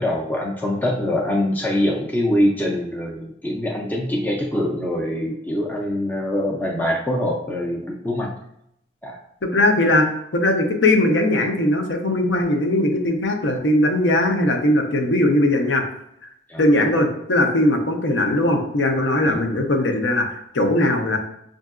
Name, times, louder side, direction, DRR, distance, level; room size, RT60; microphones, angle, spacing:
voice 1, 0.0-8.3 9.0-9.2 16.5-16.6 19.2-19.4, left 1 dB, 10° left, -2 dB, 0.4 m, -24 dB
voice 2, 9.4-15.8 16.6-20.3 20.5-21.2, left 1 dB, 85° left, 3 dB, 0.7 m, -19 dB
5.4 x 2.6 x 2.4 m, 0.75 s
head